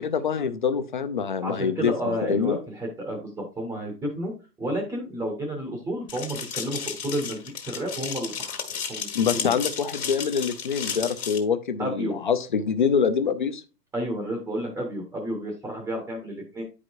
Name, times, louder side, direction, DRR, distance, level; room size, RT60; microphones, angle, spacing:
voice 1, 0.0-2.6 9.1-13.6, left 6 dB, 35° left, 10 dB, 0.5 m, -25 dB
voice 2, 1.4-4.3 4.6-8.6 8.9-9.4 11.8-12.2 13.9-16.6, right 1 dB, 5° right, 1 dB, 0.7 m, -31 dB
sound 1, 6.1-11.4, left 7 dB, 60° left, 1.6 m, -33 dB
9.6 x 4.9 x 2.5 m, 0.32 s
figure-of-eight pair, 120°, 48 cm